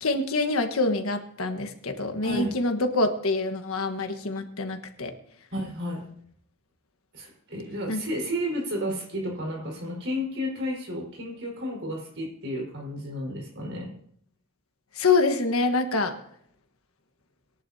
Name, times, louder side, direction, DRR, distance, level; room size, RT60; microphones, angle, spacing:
voice 1, 0.0-5.1 7.9-8.0 14.9-16.1, left 3 dB, 80° left, 7 dB, 1.4 m, -26 dB
voice 2, 5.5-6.0 7.1-13.9, equal, 60° right, 0 dB, 4.8 m, -32 dB
21.5 x 11.0 x 2.8 m, 0.67 s
head